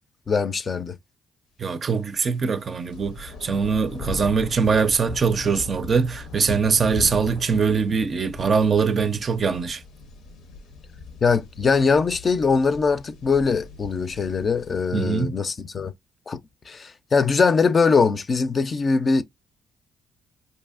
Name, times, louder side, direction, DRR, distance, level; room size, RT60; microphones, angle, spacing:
voice 1, 0.3-1.0 11.2-15.9 16.3-16.4 16.7-19.2, left 5 dB, 40° left, 0.4 m, -21 dB
voice 2, 1.6-9.8 14.9-15.4, right 5 dB, 45° right, 0.5 m, -22 dB
sound 1, 2.2-14.9, left 4 dB, 85° left, 0.6 m, -39 dB
4.6 x 2.7 x 2.4 m
cardioid pair, 90°, 0 cm